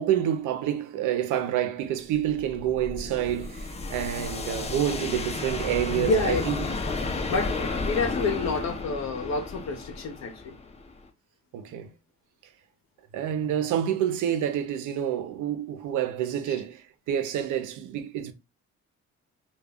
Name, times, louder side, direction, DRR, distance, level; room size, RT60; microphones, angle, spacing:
voice 1, 0.0-6.7 11.5-11.9 13.1-18.3, right 10 dB, 85° right, 0.6 m, -28 dB
sound 1, 2.1-11.1, left 3 dB, 20° left, 0.5 m, -33 dB
voice 2, 6.0-6.4 6.9-7.0 7.3-10.5, left 3 dB, 60° left, 0.7 m, -28 dB
2.3 x 2.1 x 3.3 m
cardioid pair, 90°, 30 cm